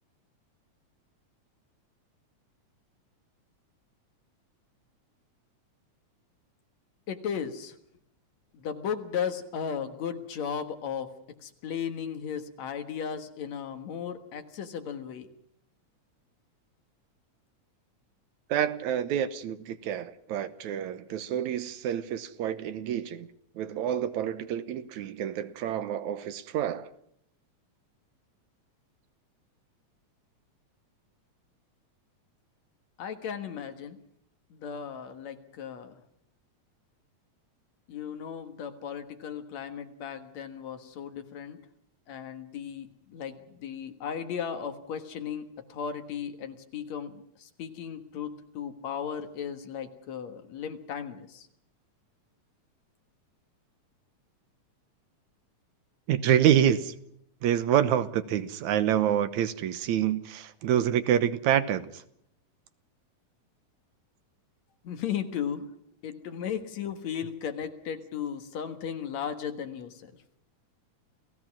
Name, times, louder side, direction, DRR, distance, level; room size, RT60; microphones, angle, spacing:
voice 1, 7.1-7.8 8.5-11.1 11.4-15.3 33.0-34.0 34.5-36.0 37.9-41.6 42.1-51.5 64.8-65.7 66.0-70.1, left 8 dB, 65° left, 2.7 m, -36 dB
voice 2, 18.5-23.3 23.6-26.9 56.1-56.9 57.4-61.9, right 10 dB, 75° right, 2.4 m, -27 dB
29.5 x 16.5 x 6.1 m
omnidirectional pair, 3.4 m